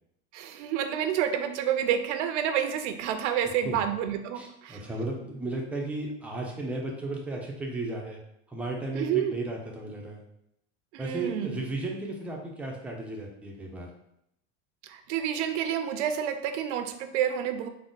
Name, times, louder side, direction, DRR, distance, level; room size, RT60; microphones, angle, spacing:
voice 1, 0.3-4.8 8.9-9.3 10.9-11.6 14.8-17.7, right 9 dB, 80° right, 8 dB, 0.5 m, -29 dB
voice 2, 4.3-8.2 8.5-10.2 11.0-13.9, right 2 dB, 5° right, -1 dB, 0.3 m, -34 dB
3.7 x 2.0 x 3.7 m, 0.78 s
supercardioid pair, 140°, 34 cm